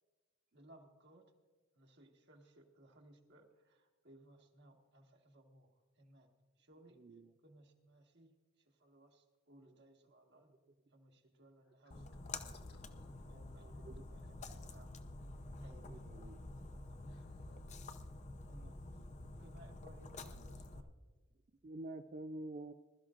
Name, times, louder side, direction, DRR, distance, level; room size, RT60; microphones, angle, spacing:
voice 1, 0.5-1.3 1.7-6.3 6.6-7.0 7.4-8.3 8.6-10.5 10.9-12.5 13.2-14.9 15.6-16.1 16.5-17.0 17.4-17.8 18.5-19.0 19.4-20.9, right 1 dB, 55° right, 1.5 m, -63 dB
voice 2, 7.0-7.3 11.9-12.0 13.5-14.0 15.9-16.5 21.6-22.7, right 2 dB, 35° right, 0.4 m, -48 dB
Splash splatter, 11.9-20.8, left 2 dB, 35° left, 0.6 m, -49 dB
voice 3, 12.1-13.1 14.2-14.8 16.9-17.6, left 2 dB, 55° left, 1.8 m, -68 dB
21.0 x 13.0 x 2.5 m
head